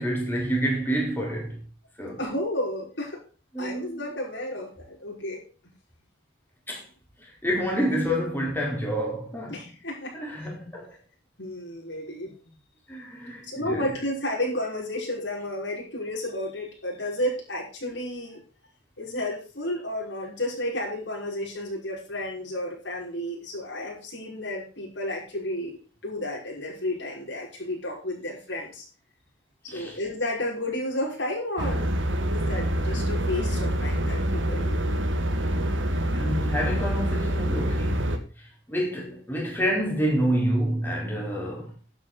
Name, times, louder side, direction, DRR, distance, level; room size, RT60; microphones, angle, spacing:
voice 1, 0.0-1.6 2.0-2.2 3.5-3.9 6.7-6.8 7.2-9.7 10.1-10.9 12.9-13.9 29.7-30.0 36.1-38.1 38.7-41.7, equal, 10° left, 5.0 m, -28 dB
voice 2, 2.2-3.2 3.6-5.4 9.5-10.1 11.4-12.3 13.2-18.4 19.0-25.8 26.0-28.8 29.7-31.9 32.3-34.8, left 1 dB, 65° left, 6.0 m, -32 dB
sound 1, 31.6-38.2, equal, 75° right, 1.9 m, -26 dB
12.5 x 8.9 x 5.2 m
head